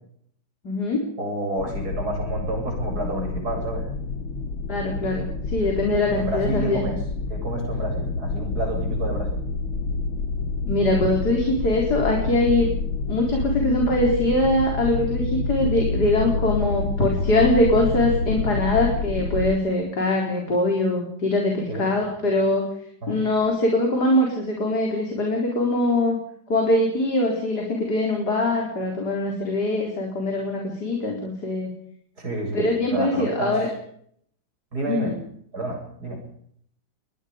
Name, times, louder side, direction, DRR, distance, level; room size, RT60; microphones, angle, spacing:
voice 1, 0.6-1.0 4.7-6.8 10.7-12.7 13.1-22.7 23.1-26.2 26.5-31.7 32.5-33.7 34.9-35.2, left 2 dB, 55° left, 0 dB, 4.8 m, -22 dB
voice 2, 1.2-3.9 6.1-7.0 7.3-9.4 21.7-21.9 23.0-23.2 32.2-33.6 34.7-35.1 35.5-36.2, right 1 dB, 50° right, 2 dB, 8.8 m, -29 dB
sound 1, 1.6-19.5, left 3 dB, 80° left, 2.1 m, -28 dB
25.0 x 20.5 x 5.3 m, 0.67 s
omnidirectional pair, 2.1 m